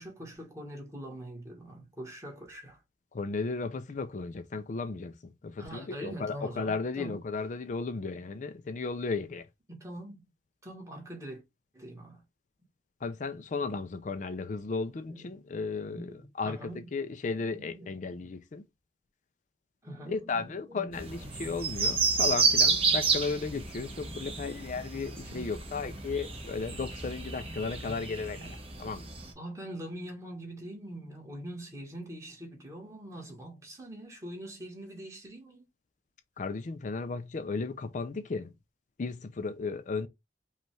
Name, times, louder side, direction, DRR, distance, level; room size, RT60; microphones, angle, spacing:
voice 1, 0.0-2.8 5.6-7.2 9.7-10.2 10.6-11.4 11.7-12.2 15.1-15.5 15.8-16.9 17.3-18.3 19.8-21.8 22.9-23.0 24.1-24.5 25.2-25.9 27.7-28.5 29.2-35.6, right 1 dB, 15° right, 1.5 m, -44 dB
voice 2, 3.1-5.2 5.4-9.5 13.0-18.6 20.1-29.1 36.4-38.5 39.0-40.1, left 4 dB, 45° left, 0.4 m, -35 dB
sound 1, 20.9-29.3, right 4 dB, 35° right, 1.1 m, -30 dB
5.2 x 2.4 x 3.2 m
head